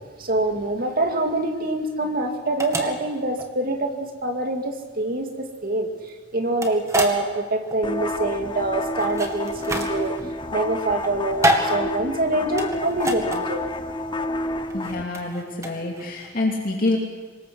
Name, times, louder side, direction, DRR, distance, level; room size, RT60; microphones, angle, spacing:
voice 1, 0.2-5.9 6.3-10.1 10.5-13.7, right 2 dB, 50° right, 4 dB, 2.5 m, -25 dB
sound 1, 0.9-16.3, right 1 dB, 15° right, 2.1 m, -29 dB
sound 2, 7.8-15.0, left 2 dB, 25° left, 0.9 m, -30 dB
voice 2, 14.7-17.0, left 2 dB, 50° left, -1 dB, 2.7 m, -26 dB
25.0 x 21.0 x 6.3 m, 1.4 s
head